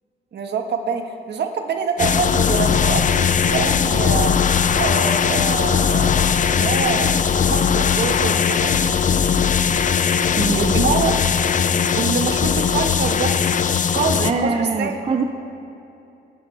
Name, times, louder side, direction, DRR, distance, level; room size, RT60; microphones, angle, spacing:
voice 1, 0.3-4.3 4.7-7.2 7.5-9.0 10.1-11.2 11.9-13.3 13.9-15.1, right 5 dB, 60° right, 4 dB, 1.7 m, -25 dB
sound 1, 2.0-14.3, left 7 dB, 40° left, 0.6 m, -19 dB
voice 2, 10.4-10.7 14.2-15.2, right 4 dB, 30° right, 5 dB, 0.7 m, -23 dB
24.5 x 12.0 x 3.5 m, 2.7 s
cardioid pair, 90°, 20 cm